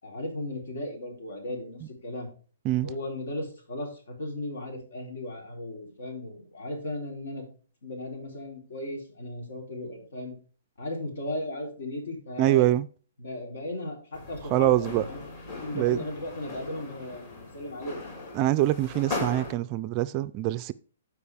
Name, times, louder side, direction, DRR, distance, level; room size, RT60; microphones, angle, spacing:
voice 1, 0.0-2.3 2.8-7.5 7.8-10.3 10.8-12.7 13.2-15.2 15.6-18.1, left 1 dB, 75° left, 3.7 m, -36 dB
voice 2, 12.4-12.9 14.5-15.1 15.7-16.0 18.3-20.7, right 14 dB, 25° right, 0.3 m, -24 dB
sound 1, 14.1-19.5, left 2 dB, 35° left, 2.7 m, -38 dB
13.0 x 4.8 x 3.4 m
hypercardioid pair, 160°, 0 cm